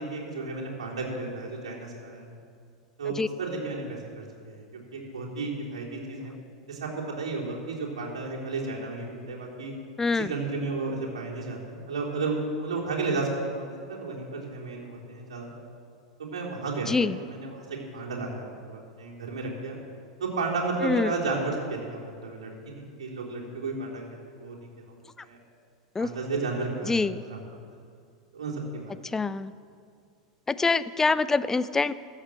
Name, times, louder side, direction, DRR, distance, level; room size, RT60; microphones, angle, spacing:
voice 1, 0.0-2.3 3.0-4.6 4.9-6.4 6.7-6.9 7.2-9.7 10.1-15.5 16.2-16.9 17.2-19.8 20.2-24.0 24.4-24.6 24.9-25.4 26.0-26.9 27.2-27.4 28.3-29.0, right 3 dB, 75° right, -4 dB, 3.7 m, -33 dB
voice 2, 10.0-10.3 16.9-17.2 20.8-21.1 25.9-26.1 26.8-27.2 29.0-29.5 30.5-31.9, left 4 dB, 15° left, 16 dB, 0.5 m, -25 dB
14.0 x 8.2 x 7.5 m, 2.2 s
hypercardioid pair, 90°, 3 cm